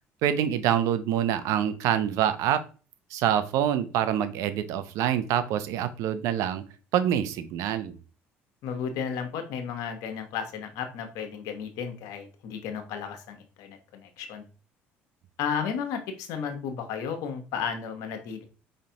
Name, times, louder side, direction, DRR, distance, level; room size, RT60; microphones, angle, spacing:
voice 1, 0.2-2.6 3.1-6.6 6.9-7.9, right 10 dB, 75° right, 11 dB, 0.6 m, -26 dB
voice 2, 8.6-14.4 15.4-18.4, left 7 dB, 75° left, 6 dB, 1.0 m, -33 dB
5.1 x 3.2 x 2.8 m, 0.35 s
supercardioid pair, 80°, 5 cm